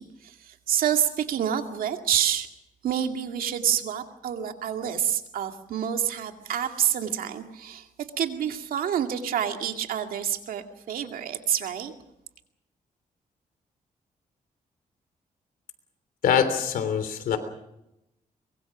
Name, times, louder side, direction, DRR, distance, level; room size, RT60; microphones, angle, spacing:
voice 1, 0.0-2.5 2.8-7.9 8.2-11.9, right 9 dB, 85° right, 6 dB, 2.2 m, -28 dB
voice 2, 16.2-17.4, left 7 dB, 85° left, 10 dB, 3.3 m, -23 dB
24.0 x 22.5 x 6.1 m, 0.85 s
cardioid pair, 90°, 14 cm